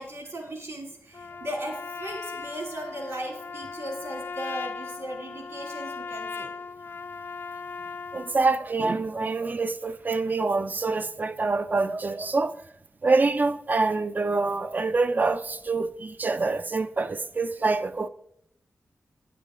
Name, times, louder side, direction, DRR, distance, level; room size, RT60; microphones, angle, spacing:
voice 1, 0.0-6.5, right 1 dB, 65° right, 2.8 m, -37 dB
Trumpet, 1.1-8.4, left 4 dB, 50° left, 0.3 m, -38 dB
voice 2, 8.1-12.6 13.0-18.1, right 3 dB, 40° right, 0.5 m, -26 dB
10.0 x 6.8 x 3.7 m
wide cardioid pair, 100°, 5 cm